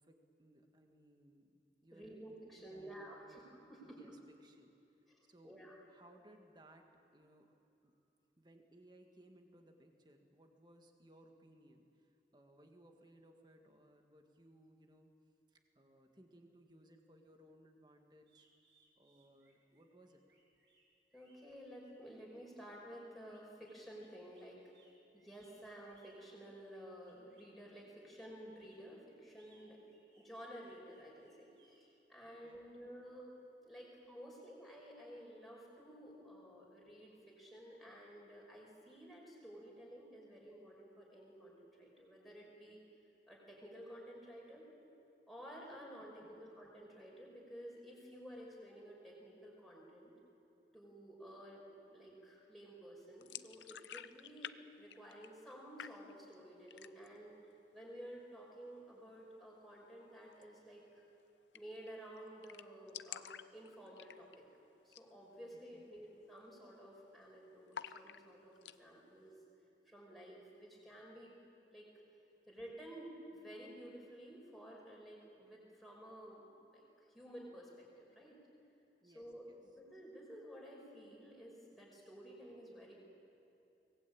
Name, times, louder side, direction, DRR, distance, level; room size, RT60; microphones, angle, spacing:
voice 1, 0.0-2.2 2.7-3.4 3.8-4.7 5.2-6.9 7.1-7.9 8.4-15.1 15.5-18.5 19.0-20.4 32.4-32.6 46.2-46.3 65.7-65.9 79.0-79.6, right 1 dB, 25° right, 3 dB, 1.9 m, -64 dB
voice 2, 1.9-4.0 5.1-5.7 21.1-24.6 25.1-29.8 30.2-33.4 33.6-42.8 43.3-44.7 45.3-50.1 50.7-57.3 57.7-61.0 61.5-64.5 64.8-69.3 69.9-71.4 71.7-71.9 72.5-76.5 76.7-78.4 79.0-82.9, equal, ahead, -4 dB, 5.4 m, -53 dB
sound 1, 18.2-27.6 28.3-31.8, right 3 dB, 80° right, 5.9 m, -73 dB
sound 2, 53.2-54.6 54.8-55.5 55.8-56.3 56.7-57.2 57.5-57.6 58.0-58.6 60.3-60.5 60.8-60.9 61.1-61.2 61.5-61.9 62.2-62.3 62.4-64.5 64.8-65.1 65.4-65.5 66.1-66.4 66.6-67.2 67.7-68.8, left 9 dB, 90° left, 0.6 m, -50 dB
23.5 x 19.0 x 8.8 m, 2.7 s
head